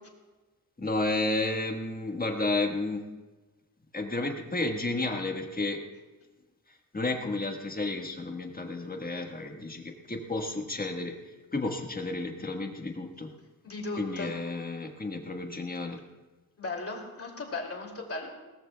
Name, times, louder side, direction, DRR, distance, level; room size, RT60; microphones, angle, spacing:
voice 1, 0.8-3.0 3.9-5.8 6.9-11.1 11.5-13.3 14.0-16.0, left 2 dB, 25° left, 3 dB, 1.4 m, -32 dB
voice 2, 13.6-14.3 16.6-18.3, left 3 dB, 40° left, 1 dB, 2.6 m, -36 dB
20.5 x 17.5 x 2.3 m, 1.2 s
wide cardioid pair, 145°, 35 cm